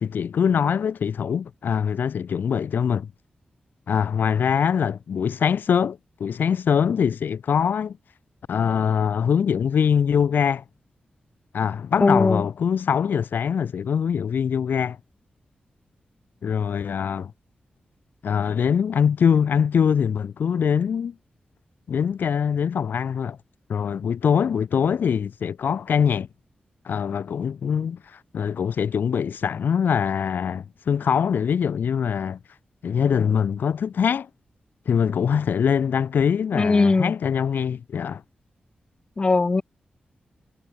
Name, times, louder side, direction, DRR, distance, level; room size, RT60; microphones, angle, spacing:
voice 1, 0.0-3.1 3.9-8.0 8.5-10.6 11.5-15.0 16.4-17.3 18.2-21.1 21.9-23.4 23.7-26.3 26.9-32.4 32.8-34.3 34.9-38.2, left 7 dB, 85° left, 2.5 m, -23 dB
voice 2, 12.0-12.4 36.5-37.1 39.2-39.6, left 3 dB, 30° left, 0.4 m, -19 dB
wide cardioid pair, 105°, 3 cm